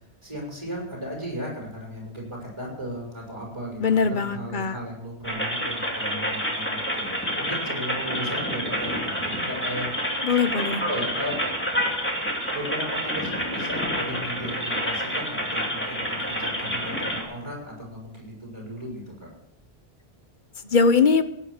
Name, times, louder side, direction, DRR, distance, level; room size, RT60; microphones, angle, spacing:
voice 1, 0.2-9.9 10.9-11.4 12.5-19.3, equal, 30° right, -2 dB, 6.6 m, -36 dB
voice 2, 3.8-4.8 10.2-10.8 20.7-21.2, left 5 dB, 55° left, 11 dB, 1.0 m, -21 dB
sound 1, 5.2-17.2, equal, 10° left, 2.6 m, -28 dB
17.0 x 9.8 x 6.7 m, 0.80 s
omnidirectional pair, 1.0 m